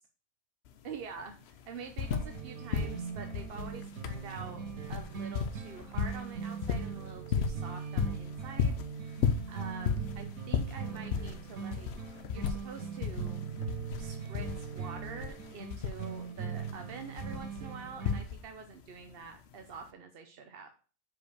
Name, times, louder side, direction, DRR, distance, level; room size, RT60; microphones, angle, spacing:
sound 1, 0.7-0.8 1.0-2.4 2.7-18.7 19.7-19.8, left 6 dB, 60° left, 0.8 m, -35 dB
voice 1, 0.8-1.4 1.7-4.6 4.9-8.7 9.5-11.9 12.3-13.4 14.0-20.7, right 5 dB, 50° right, 5 dB, 0.8 m, -46 dB
sound 2, 2.0-18.2, right 6 dB, 85° right, 1.5 m, -41 dB
5.2 x 4.8 x 6.4 m, 0.37 s
omnidirectional pair, 1.4 m